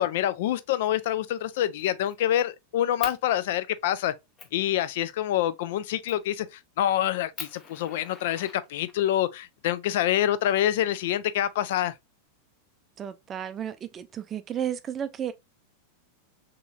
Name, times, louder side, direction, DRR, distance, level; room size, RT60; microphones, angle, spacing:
voice 1, 0.0-4.1 4.5-6.5 6.8-11.9, left 12 dB, 55° left, 0.3 m, -26 dB
Fire, 0.8-1.1 1.5-2.4 3.0-3.2 3.8-3.9 4.4-4.6 6.1-6.3 6.8-6.9 7.3-9.1 10.2-11.1, left 5 dB, 25° left, 0.7 m, -43 dB
voice 2, 13.0-15.3, right 9 dB, 25° right, 0.4 m, -33 dB
3.6 x 3.0 x 2.3 m
figure-of-eight pair, 90°, 0 cm